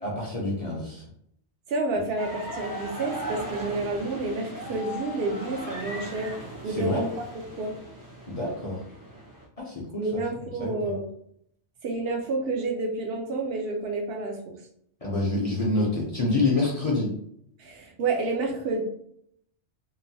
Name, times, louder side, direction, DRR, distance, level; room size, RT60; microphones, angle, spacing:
voice 1, 0.0-1.0 6.7-7.0 8.3-8.8 9.6-10.2 10.6-10.9 15.0-17.1, left 2 dB, 40° left, -4 dB, 0.6 m, -27 dB
voice 2, 1.7-6.4 6.6-7.7 10.0-11.1 11.8-14.5 17.6-18.8, right 3 dB, 65° right, 2 dB, 0.8 m, -29 dB
sound 1, 2.2-9.4, right 1 dB, 20° right, 0.6 m, -38 dB
3.0 x 2.1 x 2.7 m, 0.69 s
omnidirectional pair, 1.2 m